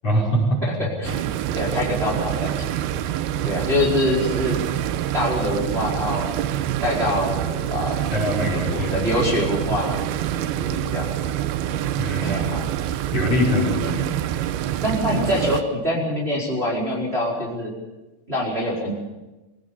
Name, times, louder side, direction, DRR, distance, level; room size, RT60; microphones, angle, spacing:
voice 1, 0.0-0.6 8.1-9.0 12.0-12.6 13.1-14.0, equal, 40° left, -2 dB, 6.2 m, -23 dB
voice 2, 0.8-1.3 1.5-2.5 3.4-4.6 5.1-6.3 6.8-8.0 8.5-10.1 10.4-11.3 12.2-12.7 14.8-17.7 18.3-18.9, left 1 dB, 15° right, -5 dB, 4.6 m, -25 dB
sound 1, 1.1-15.6, right 11 dB, 80° right, 2.8 m, -26 dB
24.0 x 17.5 x 7.0 m, 1.1 s
omnidirectional pair, 4.4 m